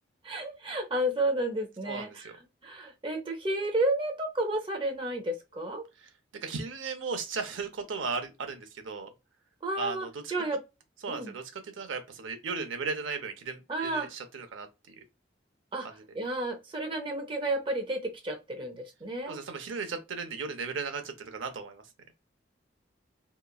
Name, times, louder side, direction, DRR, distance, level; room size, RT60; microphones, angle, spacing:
voice 1, 0.2-2.3 2.6-5.8 9.6-10.6 11.1-11.3 13.7-14.1 15.7-15.9 16.2-19.4, right 1 dB, 25° right, 0.5 m, -31 dB
voice 2, 1.9-2.3 6.0-6.1 6.4-9.1 9.8-10.2 11.0-15.0 15.8-16.0 19.3-21.9, right 4 dB, 85° right, 0.6 m, -36 dB
2.9 x 2.3 x 2.2 m
head